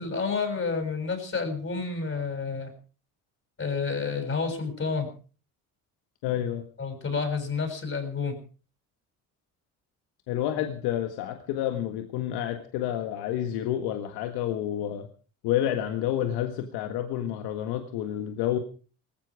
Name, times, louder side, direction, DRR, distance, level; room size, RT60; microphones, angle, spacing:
voice 1, 0.0-2.7 3.6-5.1 6.8-8.4, left 5 dB, 35° left, 4 dB, 6.8 m, -29 dB
voice 2, 6.2-6.6 10.3-15.1 15.4-18.6, left 11 dB, 80° left, 7 dB, 1.8 m, -29 dB
18.5 x 15.5 x 4.9 m, 0.40 s
supercardioid pair, 85°, 38 cm